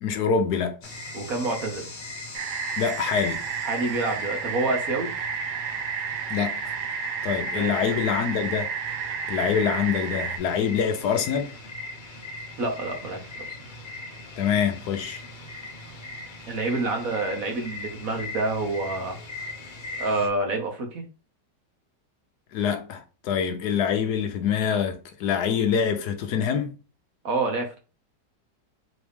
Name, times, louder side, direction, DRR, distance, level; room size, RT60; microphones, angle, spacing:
voice 1, 0.0-0.8 2.8-3.4 6.3-6.6 7.2-8.7 9.3-11.5 14.4-15.2 22.5-26.7, left 7 dB, 70° left, 1.2 m, -25 dB
sound 1, 0.8-20.3, left 2 dB, 40° left, 0.7 m, -39 dB
voice 2, 1.1-1.9 3.6-5.1 7.5-7.7 12.6-13.6 16.5-19.2 20.0-21.0 27.2-27.8, right 2 dB, 60° right, 1.3 m, -28 dB
sound 2, 2.3-10.4, right 8 dB, 85° right, 1.3 m, -31 dB
4.0 x 3.1 x 3.4 m
omnidirectional pair, 1.8 m